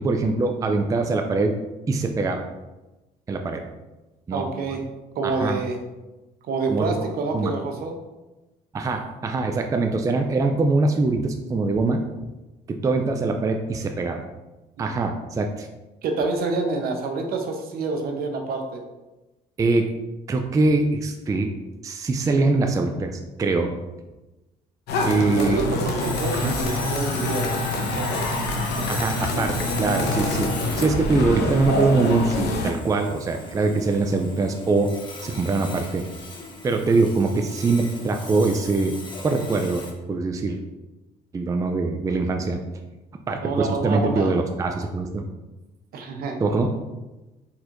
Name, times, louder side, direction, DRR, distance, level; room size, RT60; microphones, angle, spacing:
voice 1, 0.0-1.6 1.9-2.4 3.3-3.6 4.3-4.4 5.2-5.6 6.7-7.1 7.3-7.5 8.7-12.0 12.7-14.2 14.8-15.7 19.6-19.9 20.3-21.5 21.8-23.8 25.1-25.6 26.4-26.6 28.9-30.5 30.8-34.9 35.2-36.0 36.6-38.9 39.2-40.6 41.3-42.6 43.3-45.2 46.4-46.7, right 3 dB, 20° right, 4 dB, 0.4 m, -23 dB
voice 2, 4.3-4.8 5.1-5.8 6.4-7.9 16.0-18.8 25.4-28.5 43.4-44.3 45.9-46.4, right 3 dB, 65° right, 4 dB, 0.8 m, -27 dB
sound 1, 24.9-32.7, left 2 dB, 80° left, 0.8 m, -26 dB
Sawing, 26.0-39.9, left 2 dB, 30° left, 0.8 m, -38 dB
4.4 x 4.2 x 2.5 m, 1.1 s
cardioid pair, 110°, 17 cm